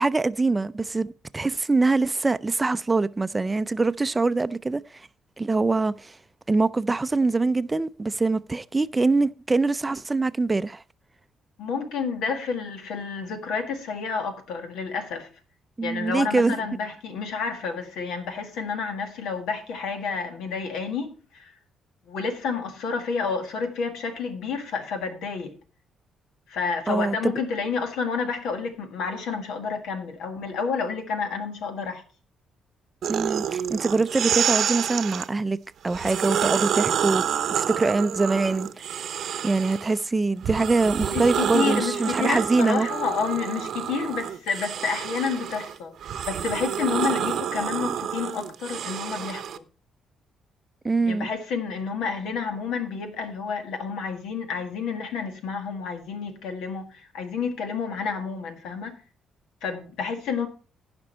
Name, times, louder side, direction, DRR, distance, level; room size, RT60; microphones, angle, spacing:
voice 1, 0.0-5.1 5.4-6.2 6.5-10.8 15.8-16.6 26.9-27.3 33.1-35.6 35.8-37.2 37.5-38.7 39.4-42.9 50.8-51.3, right 3 dB, 20° right, 0.4 m, -24 dB
voice 2, 11.6-15.3 15.8-21.6 22.1-25.6 26.5-32.0 41.0-46.0 46.3-49.6 51.1-59.0 59.6-60.5, left 5 dB, 85° left, 1.8 m, -30 dB
sound 1, 33.0-35.3 35.9-40.0 40.4-49.6, right 9 dB, 65° right, 0.7 m, -28 dB
15.5 x 5.2 x 4.4 m
cardioid pair, 90°, 0 cm